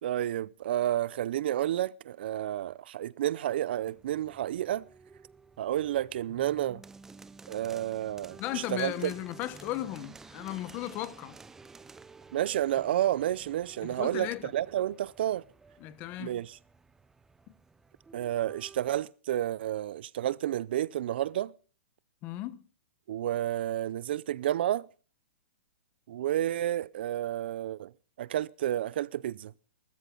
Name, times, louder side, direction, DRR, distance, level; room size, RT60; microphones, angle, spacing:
voice 1, 0.0-4.8 5.6-6.8 7.5-9.1 12.3-15.4 16.2-16.6 18.1-21.5 23.1-24.9 26.1-27.9 28.2-29.5, right 12 dB, 55° right, 0.6 m, -30 dB
sound 1, 3.8-19.0, right 4 dB, 5° right, 0.7 m, -53 dB
voice 2, 8.4-11.4 13.8-14.5 15.8-16.4 17.5-17.6 22.2-22.6, left 15 dB, 25° left, 1.1 m, -36 dB
20.5 x 14.0 x 3.9 m
hypercardioid pair, 160°, 7 cm